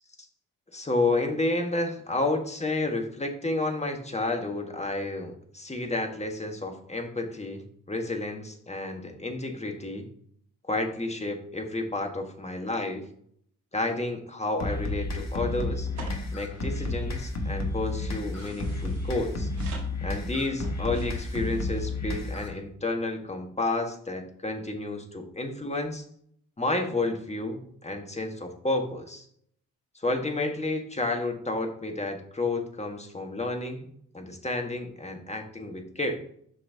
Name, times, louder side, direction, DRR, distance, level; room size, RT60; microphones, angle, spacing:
voice 1, 0.7-10.1 10.7-13.0 13.7-15.9 16.3-19.5 20.0-26.0 26.6-29.2 29.9-33.9 34.1-36.2, left 2 dB, 15° left, 4 dB, 1.5 m, -31 dB
sound 1, 14.6-22.6, left 2 dB, 35° left, 1.6 m, -31 dB
sound 2, 16.0-21.9, right 4 dB, 85° right, 1.4 m, -48 dB
8.2 x 5.6 x 2.8 m, 0.65 s
hypercardioid pair, 40°, 44 cm